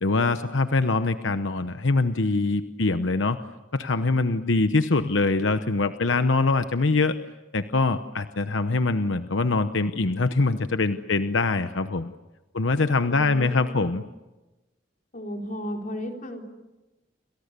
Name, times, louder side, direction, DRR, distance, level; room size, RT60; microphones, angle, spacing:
voice 1, 0.0-3.4 3.7-7.1 7.5-12.1 12.5-14.0, left 3 dB, 90° left, 9 dB, 1.0 m, -23 dB
voice 2, 12.9-14.0 15.1-16.4, equal, 45° left, 2 dB, 4.2 m, -35 dB
29.5 x 26.0 x 6.8 m, 1.1 s
head